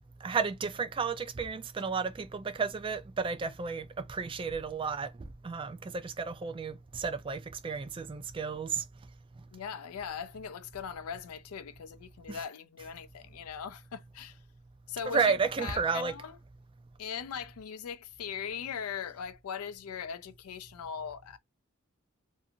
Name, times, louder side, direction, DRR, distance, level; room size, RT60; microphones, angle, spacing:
voice 1, 0.2-8.8 12.3-12.4 15.0-16.1, right 5 dB, 25° right, 0.3 m, -32 dB
voice 2, 9.5-14.4 14.9-15.3 15.6-16.4 17.0-21.4, left 7 dB, 80° left, 0.4 m, -40 dB
2.6 x 2.4 x 2.6 m
head